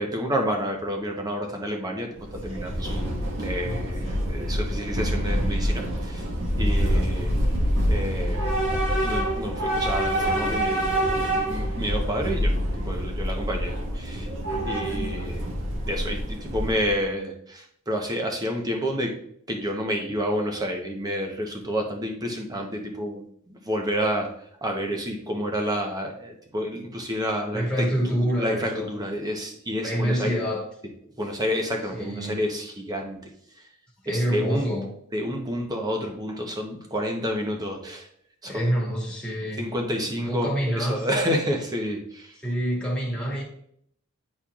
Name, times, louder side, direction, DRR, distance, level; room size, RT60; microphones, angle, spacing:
voice 1, 0.0-6.3 6.6-7.3 7.9-8.5 9.0-14.3 14.6-15.4 15.9-19.2 19.5-24.3 24.6-30.4 31.2-33.2 34.1-34.7 35.1-38.1 38.4-38.7 39.6-42.3, equal, 15° right, 0.9 m, -29 dB
Train / Subway metro underground, 2.2-17.0, equal, 60° right, 1.5 m, -26 dB
voice 2, 6.8-7.1 8.2-8.5 27.5-28.9 29.8-30.7 31.9-32.4 34.0-34.9 38.4-39.6 40.2-41.1 42.4-43.4, equal, 5° left, 1.9 m, -27 dB
10.0 x 4.3 x 2.4 m
head